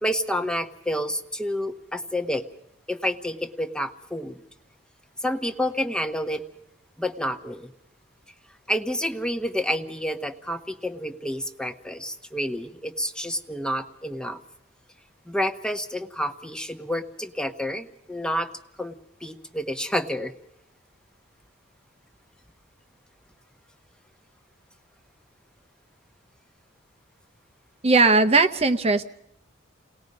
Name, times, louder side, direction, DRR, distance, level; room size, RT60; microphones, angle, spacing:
voice 1, 0.0-2.4 2.9-4.4 5.2-6.4 7.0-7.7 8.7-14.4 15.3-18.5 18.8-19.0 19.2-20.3, equal, 5° left, 7 dB, 0.9 m, -29 dB
voice 2, 27.8-29.0, right 3 dB, 30° right, 8 dB, 0.8 m, -18 dB
29.0 x 19.0 x 5.4 m, 0.78 s
head